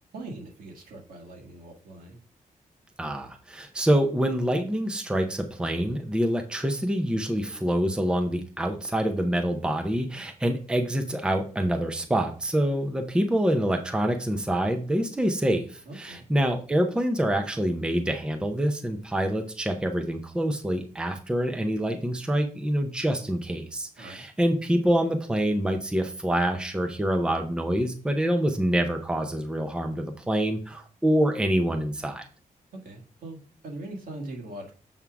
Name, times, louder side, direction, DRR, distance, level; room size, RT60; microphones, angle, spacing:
voice 1, 0.1-2.2 15.9-16.2 24.0-24.2 32.8-34.7, right 2 dB, 80° right, 1 dB, 1.8 m, -41 dB
voice 2, 3.0-32.2, right 1 dB, 5° right, 5 dB, 0.6 m, -26 dB
7.1 x 3.7 x 4.6 m, 0.39 s
wide cardioid pair, 175°, 14 cm